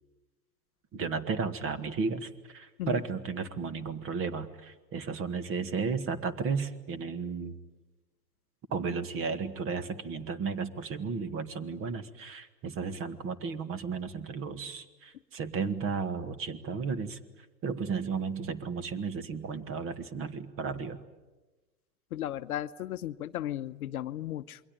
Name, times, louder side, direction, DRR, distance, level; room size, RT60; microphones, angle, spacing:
voice 1, 0.9-7.6 8.7-17.2 17.6-21.0, right 5 dB, 25° right, 12 dB, 1.8 m, -34 dB
voice 2, 22.1-24.6, left 12 dB, 60° left, 13 dB, 0.9 m, -35 dB
28.0 x 22.5 x 9.1 m, 1.1 s
hypercardioid pair, 115°, 50 cm